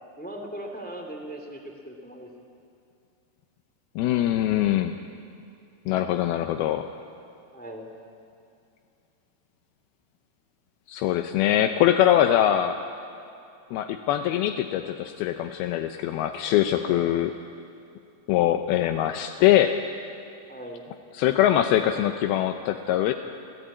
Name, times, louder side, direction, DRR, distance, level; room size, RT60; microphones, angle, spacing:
voice 1, 0.2-2.3 7.5-7.9 16.8-17.1 20.5-20.8, right 1 dB, 5° left, 2 dB, 0.6 m, -39 dB
voice 2, 4.0-5.0 5.9-6.8 10.9-12.8 13.7-17.3 18.3-19.7 21.1-23.1, left 12 dB, 80° left, 6 dB, 2.3 m, -23 dB
27.5 x 16.0 x 8.6 m, 2.5 s
omnidirectional pair, 5.2 m